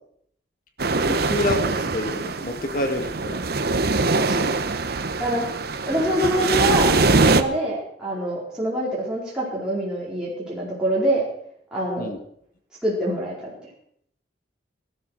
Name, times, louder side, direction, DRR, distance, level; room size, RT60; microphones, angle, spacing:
sound 1, 0.8-7.4, right 3 dB, 55° right, 1.0 m, -22 dB
voice 1, 1.1-3.4 12.0-12.2, left 1 dB, 45° left, 6 dB, 1.8 m, -27 dB
voice 2, 4.2-4.5 5.2-5.4 5.9-11.2 11.7-12.1 12.8-13.3, right 1 dB, 5° right, -8 dB, 4.5 m, -25 dB
17.0 x 12.5 x 6.4 m, 0.69 s
head